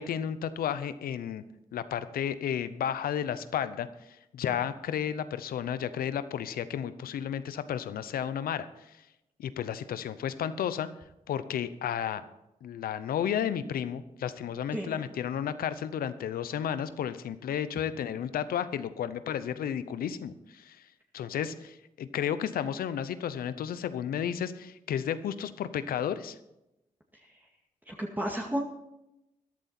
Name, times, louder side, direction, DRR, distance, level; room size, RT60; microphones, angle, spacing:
voice 1, 0.0-1.4 1.7-8.9 9.4-10.9 11.3-12.2 12.6-20.8 21.1-26.4, left 9 dB, 90° left, 14 dB, 0.7 m, -32 dB
voice 2, 27.9-28.6, right 1 dB, 10° right, -1 dB, 2.1 m, -32 dB
13.5 x 11.5 x 4.4 m, 0.90 s
supercardioid pair, 45°, 15 cm